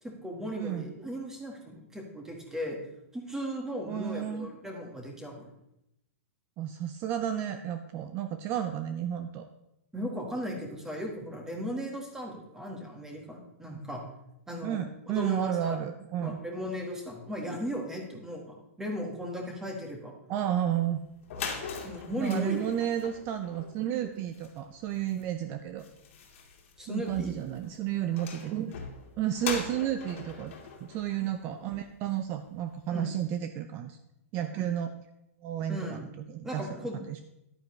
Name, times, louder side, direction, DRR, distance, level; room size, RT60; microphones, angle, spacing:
voice 1, 0.0-2.8 3.1-5.5 9.9-14.0 14.5-15.9 16.2-20.2 21.8-22.6 26.8-27.3 32.9-33.2 35.7-36.1 36.4-37.0, equal, 5° right, 1 dB, 1.6 m, -37 dB
voice 2, 0.6-0.9 3.9-4.5 6.6-9.5 14.6-16.4 20.3-21.0 22.2-25.8 26.8-28.7 29.2-30.5 30.9-34.0 34.3-34.9 35.4-37.2, right 10 dB, 30° right, 9 dB, 0.5 m, -32 dB
sound 1, 20.9-21.0 21.2-32.0, left 5 dB, 60° left, 2.0 m, -42 dB
10.5 x 9.3 x 3.2 m, 0.84 s
hypercardioid pair, 150°, 8 cm